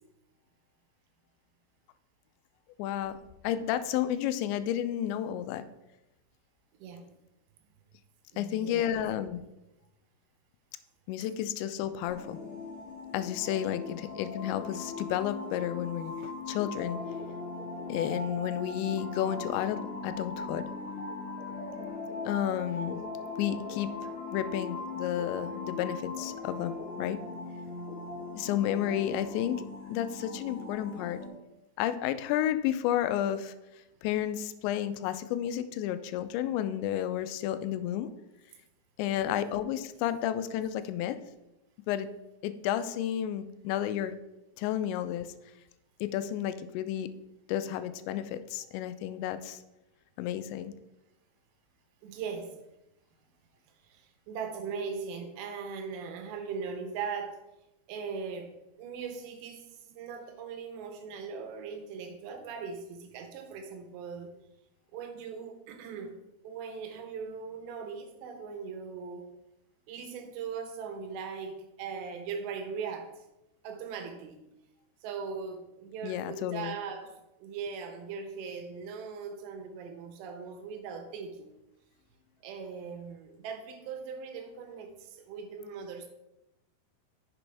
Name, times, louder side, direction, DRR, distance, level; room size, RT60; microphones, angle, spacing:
voice 1, 2.8-3.2 3.4-5.7 8.4-9.4 11.1-12.4 13.1-17.0 17.9-20.7 22.3-23.0 23.4-23.9 24.3-27.2 28.4-29.6 29.9-31.2 31.8-33.5 34.0-38.1 39.0-41.2 41.9-42.1 42.4-44.1 44.6-45.3 46.0-47.1 47.5-49.6 50.2-50.7 76.0-76.8, left 11 dB, 85° left, 12 dB, 2.9 m, -31 dB
voice 2, 6.7-7.1 8.3-9.0 39.0-39.4 52.0-52.6 53.8-57.4 57.9-58.5 58.8-64.4 64.9-66.2 66.4-69.2 69.9-73.3 73.6-74.4 75.0-81.5 82.4-86.1, right 5 dB, 80° right, 6 dB, 3.0 m, -40 dB
sound 1, 12.1-31.3, left 3 dB, 55° left, 3.6 m, -39 dB
10.0 x 6.9 x 3.3 m, 0.95 s
omnidirectional pair, 5.1 m